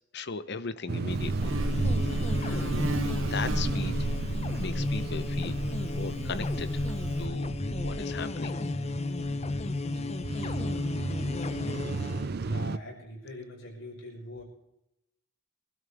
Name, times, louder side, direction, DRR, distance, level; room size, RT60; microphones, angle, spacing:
voice 1, 0.1-1.6 2.2-2.6 3.3-4.1 4.6-5.6 5.9-6.8 7.2-7.5 7.8-8.6, left 4 dB, 60° left, 12 dB, 0.9 m, -37 dB
sound 1, 0.9-12.8, right 3 dB, 55° right, 0.5 m, -35 dB
Buzz, 1.1-7.3, right 2 dB, 85° right, 1.0 m, -34 dB
sound 2, 1.3-12.3, left 2 dB, 35° left, 0.7 m, -33 dB
voice 2, 12.0-14.4, left 1 dB, 75° left, -2 dB, 6.2 m, -43 dB
25.0 x 12.5 x 3.5 m, 0.85 s
head